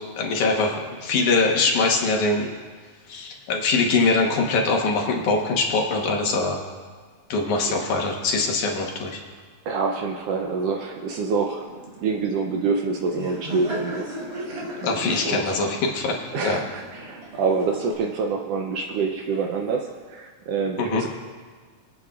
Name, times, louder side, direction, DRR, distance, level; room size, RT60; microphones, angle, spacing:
voice 1, 0.2-0.8 1.0-2.5 3.1-6.6 7.3-9.2 14.8-16.2 16.4-16.6 20.8-21.0, left 3 dB, 75° left, 0 dB, 2.6 m, -22 dB
voice 2, 9.6-11.7 12.0-15.4 16.3-21.1, right 4 dB, 75° right, 2 dB, 1.5 m, -27 dB
Laughter, 11.7-17.9, equal, 35° right, 2.1 m, -37 dB
24.0 x 8.7 x 2.4 m, 1.6 s
omnidirectional pair, 3.4 m